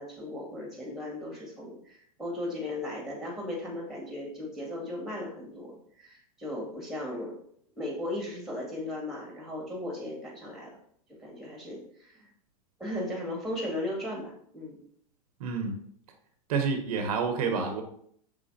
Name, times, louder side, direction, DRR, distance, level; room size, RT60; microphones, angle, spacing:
voice 1, 0.0-7.4 7.8-10.7 11.2-12.3 12.8-14.8, left 1 dB, ahead, -1 dB, 1.8 m, -36 dB
voice 2, 15.4-15.8 16.5-17.8, right 5 dB, 75° right, 5 dB, 0.8 m, -28 dB
5.7 x 3.7 x 2.5 m, 0.64 s
hypercardioid pair, 110°, 19 cm